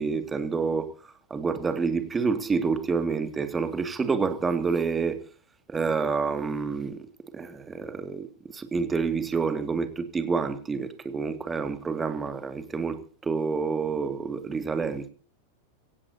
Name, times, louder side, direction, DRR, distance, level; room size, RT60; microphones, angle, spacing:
voice 1, 0.0-5.2 5.7-7.0 7.3-8.3 8.5-15.1, right 5 dB, 15° right, 2.1 m, -28 dB
23.5 x 17.0 x 2.8 m
figure-of-eight pair, 90°, 0 cm